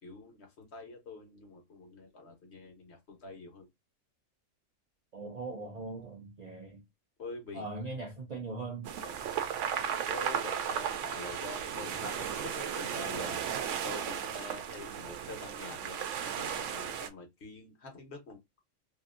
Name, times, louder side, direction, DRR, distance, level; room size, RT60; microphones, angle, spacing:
voice 1, 0.0-3.7 7.2-7.7 9.0-9.2 10.0-13.4 13.8-18.4, left 3 dB, 55° left, 1.2 m, -46 dB
voice 2, 5.1-6.8 7.5-8.9, right 3 dB, 50° right, 0.5 m, -40 dB
sound 1, 8.8-17.1, right 8 dB, 70° right, 0.9 m, -35 dB
2.8 x 2.6 x 2.4 m
omnidirectional pair, 1.4 m